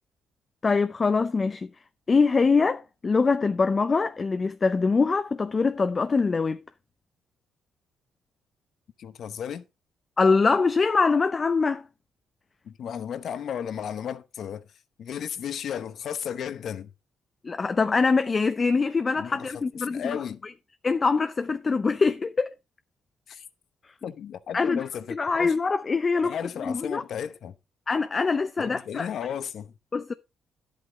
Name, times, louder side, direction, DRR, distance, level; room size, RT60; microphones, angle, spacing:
voice 1, 0.6-1.7 2.1-6.6 10.2-11.8 17.4-20.5 20.8-22.5 24.5-24.8 25.1-27.0 27.9-29.1 29.9-30.1, left 4 dB, 35° left, 0.6 m, -24 dB
voice 2, 9.0-9.6 12.6-14.6 15.0-16.9 19.2-20.4 23.3-23.4 24.0-25.6 26.2-27.5 28.6-29.7, left 8 dB, 65° left, 0.9 m, -34 dB
10.5 x 8.4 x 3.7 m
cardioid pair, 90°, 0 cm